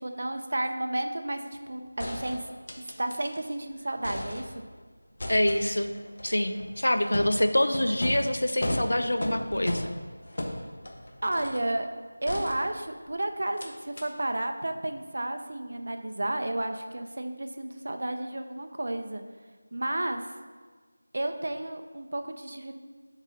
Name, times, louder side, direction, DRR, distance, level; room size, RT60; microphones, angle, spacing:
voice 1, 0.0-2.4 2.8-4.5 11.2-11.9 12.2-19.2 19.7-20.3 21.1-22.7, right 1 dB, 60° right, 6 dB, 0.6 m, -32 dB
sound 1, 1.5-1.6 2.0-3.5 3.8-4.8 5.2-11.7 12.3-13.1 13.6-13.7 14.0-14.1, left 1 dB, 55° left, 0.9 m, -36 dB
voice 2, 5.3-5.9 6.2-9.9, left 1 dB, 80° left, 8 dB, 0.6 m, -26 dB
7.3 x 4.0 x 4.0 m, 1.4 s
figure-of-eight pair, 175°, 0 cm